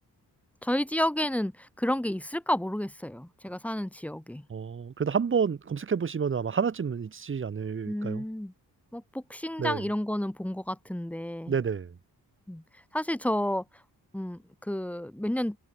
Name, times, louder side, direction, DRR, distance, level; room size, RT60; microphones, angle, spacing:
voice 1, 0.6-4.5 7.9-8.5 8.9-11.5 12.5-12.6 12.9-13.6 14.1-15.6, left 1 dB, 5° left, 2.4 m, -31 dB
voice 2, 4.5-8.2 9.6-9.8 11.5-11.9, right 6 dB, 35° right, 1.2 m, -29 dB
wide cardioid pair, 130°, 38 cm